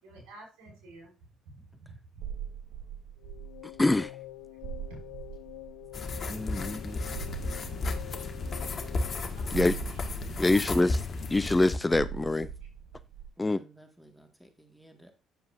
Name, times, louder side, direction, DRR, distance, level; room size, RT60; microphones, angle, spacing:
voice 1, 0.0-1.1 1.5-1.6 1.8-2.0 4.9-5.0 6.5-6.8 9.4-10.1 10.5-11.0, right 2 dB, 75° right, 5.4 m, -49 dB
sound 1, 2.2-6.2 7.1-9.0 9.5-11.3 11.9-13.3, right 7 dB, 55° right, 1.1 m, -41 dB
sound 2, 3.2-10.4, left 17 dB, 90° left, 0.4 m, -47 dB
voice 2, 3.8-4.1 6.3-7.0 9.5-9.7 10.4-11.0 11.3-12.5 13.4-13.6, left 2 dB, 20° left, 0.5 m, -25 dB
sound 3, 5.9-11.8, left 3 dB, 40° left, 1.5 m, -34 dB
voice 3, 13.4-15.1, right 2 dB, ahead, 1.7 m, -56 dB
9.3 x 7.6 x 2.5 m
hypercardioid pair, 60°, 0 cm